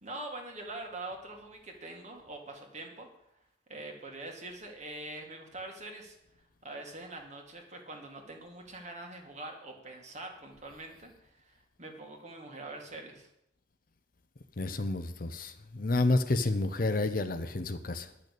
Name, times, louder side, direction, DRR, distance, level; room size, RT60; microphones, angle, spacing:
voice 1, 0.0-3.1 3.7-6.2 6.6-13.3, right 2 dB, 35° right, 2.0 m, -44 dB
voice 2, 14.6-18.1, left 2 dB, 45° left, 0.7 m, -30 dB
10.5 x 6.6 x 8.3 m
head